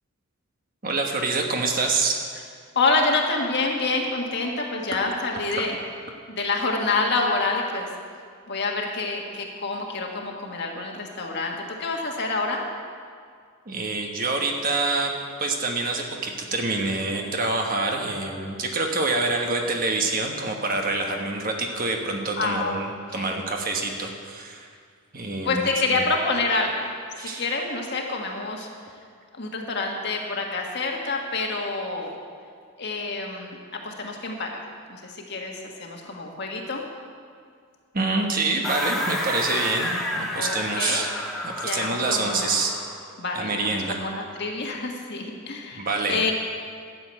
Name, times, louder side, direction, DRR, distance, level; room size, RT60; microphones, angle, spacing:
voice 1, 0.8-2.2 13.7-15.1 15.4-24.7 25.1-25.6 25.9-26.0 27.2-27.4 37.9-41.1 41.4-42.8 43.3-44.0 45.7-46.2, right 3 dB, 40° right, 2 dB, 1.2 m, -26 dB
voice 2, 2.7-5.8 6.3-7.9 8.5-12.6 22.4-22.8 23.1-23.3 25.4-26.8 27.3-28.7 29.4-32.2 32.8-33.6 33.8-34.6 34.9-36.8 40.3-41.0 41.6-42.5 43.2-46.3, left 3 dB, 50° left, 0 dB, 1.6 m, -27 dB
sound 1, 38.6-43.0, left 1 dB, ahead, 1.3 m, -30 dB
12.0 x 7.1 x 8.8 m, 2.1 s
head